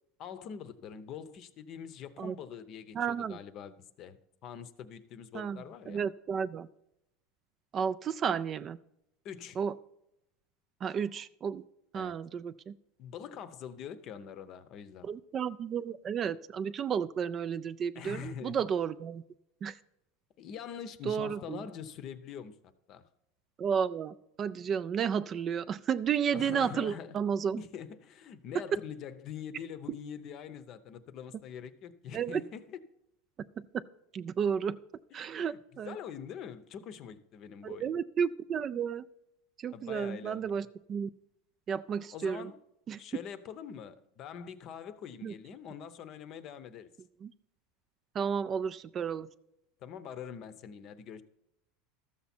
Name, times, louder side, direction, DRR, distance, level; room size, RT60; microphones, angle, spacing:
voice 1, 0.2-6.0 9.2-9.6 11.9-12.2 13.0-15.1 17.9-18.6 20.4-22.5 22.9-23.0 26.3-27.2 27.6-32.8 35.2-37.9 39.7-40.6 42.1-42.6 43.0-46.9 49.8-51.2, left 8 dB, 40° left, 0.7 m, -44 dB
voice 2, 3.0-3.4 5.3-5.6 5.9-6.7 7.7-8.8 9.6-9.7 10.8-11.6 11.9-12.7 15.0-19.2 19.6-19.8 21.1-21.6 23.6-27.6 32.1-32.4 34.1-34.8 35.1-36.0 37.6-39.1 39.6-41.1 41.7-42.5 42.9-43.0 45.2-45.3 47.2-47.3 48.1-49.3, right 7 dB, 25° right, 0.3 m, -32 dB
13.0 x 7.0 x 4.3 m
supercardioid pair, 155°, 0 cm